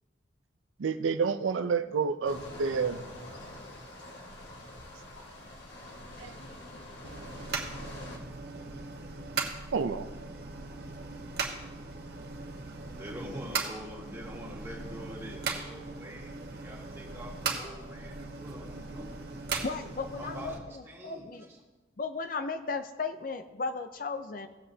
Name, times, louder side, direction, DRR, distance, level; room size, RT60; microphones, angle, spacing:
voice 1, 0.8-3.0 6.2-6.3 9.7-10.1, right 5 dB, 90° right, 9 dB, 0.5 m, -29 dB
sound 1, 2.2-8.2, left 1 dB, 70° left, 1.8 m, -45 dB
sound 2, 7.0-20.6, right 4 dB, 55° right, 1.2 m, -38 dB
voice 2, 12.8-19.1 19.6-19.7 20.2-21.5, equal, 15° right, -4 dB, 1.9 m, -45 dB
voice 3, 19.6-21.5 22.0-24.5, left 4 dB, 45° left, 8 dB, 0.5 m, -35 dB
17.0 x 7.9 x 2.8 m, 1.2 s
head